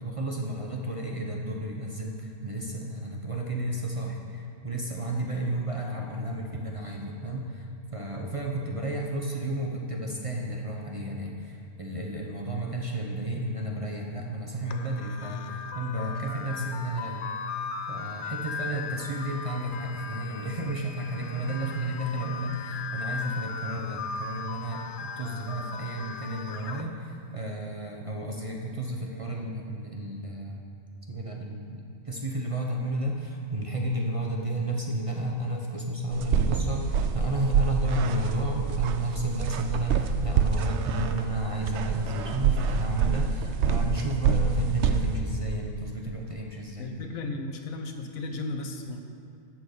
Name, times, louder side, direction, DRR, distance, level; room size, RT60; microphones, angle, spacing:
voice 1, 0.0-30.6 31.1-46.9, right 1 dB, 30° right, -1 dB, 0.8 m, -32 dB
sound 1, 14.7-26.8, left 5 dB, 70° left, 0.5 m, -38 dB
sound 2, 36.1-45.2, right 6 dB, 65° right, 0.8 m, -27 dB
voice 2, 46.8-49.1, left 2 dB, 85° left, 5 dB, 1.3 m, -35 dB
12.5 x 4.5 x 8.0 m, 2.4 s
omnidirectional pair, 1.4 m